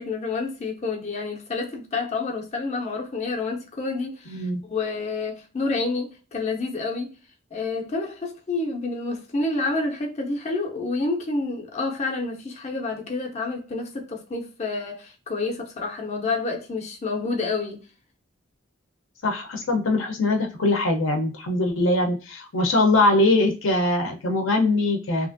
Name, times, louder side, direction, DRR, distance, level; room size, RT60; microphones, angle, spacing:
voice 1, 0.0-7.1 7.5-17.8, left 3 dB, 35° left, 0.6 m, -29 dB
voice 2, 4.3-4.6 19.2-25.3, left 2 dB, 80° left, 0.7 m, -22 dB
2.9 x 2.5 x 2.5 m
head